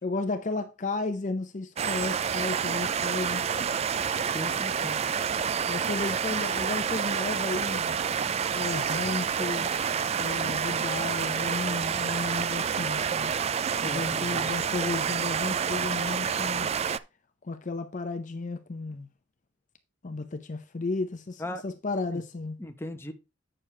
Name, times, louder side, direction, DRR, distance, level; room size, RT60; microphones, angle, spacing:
voice 1, 0.0-3.4 5.7-8.0 8.5-9.7 10.2-13.3 13.8-16.7 17.4-19.1 20.0-22.6, left 3 dB, 40° left, 0.6 m, -33 dB
sound 1, 1.8-17.0, right 7 dB, 30° right, 0.3 m, -28 dB
voice 2, 4.3-5.0 13.8-14.5 21.4-21.6 22.1-22.2 22.6-23.1, left 1 dB, 10° left, 0.9 m, -38 dB
8.7 x 6.7 x 3.3 m
head